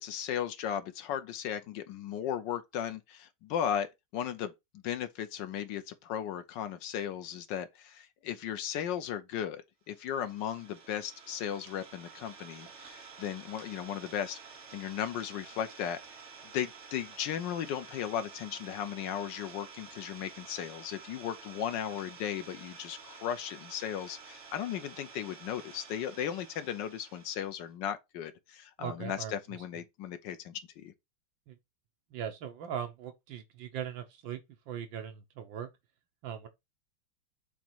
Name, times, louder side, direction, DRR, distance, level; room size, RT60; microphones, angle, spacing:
voice 1, 0.0-3.9 4.1-4.5 4.8-16.0 16.5-30.9, left 9 dB, 70° left, 1.2 m, -36 dB
Idling, 9.9-27.6, right 5 dB, 45° right, 1.0 m, -51 dB
voice 2, 28.8-29.4 31.5-31.6 32.1-34.4 34.7-35.7 36.2-36.5, right 8 dB, 70° right, 1.4 m, -39 dB
7.2 x 2.9 x 4.5 m
omnidirectional pair, 2.3 m